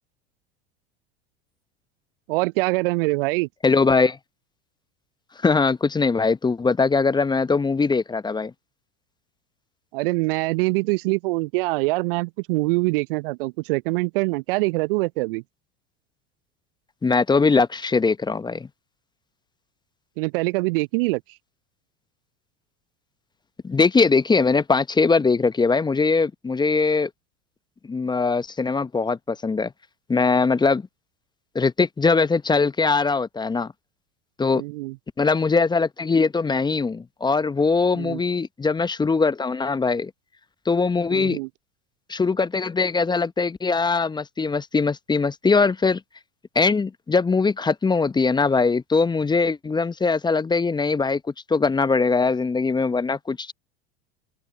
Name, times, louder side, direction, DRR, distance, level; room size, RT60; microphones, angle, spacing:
voice 1, 2.3-3.5 9.9-15.4 20.2-21.2 34.5-35.0 37.9-38.2 41.1-41.5, right 24 dB, 55° right, 0.8 m, -24 dB
voice 2, 3.6-4.2 5.4-8.5 17.0-18.7 23.6-27.1 27.9-29.7 30.1-30.9 31.5-33.7 34.4-34.6 35.2-40.1 40.7-41.4 42.1-46.0 46.5-51.2 51.5-53.5, left 4 dB, 15° left, 1.0 m, -21 dB
open air
figure-of-eight pair, 80°, 33 cm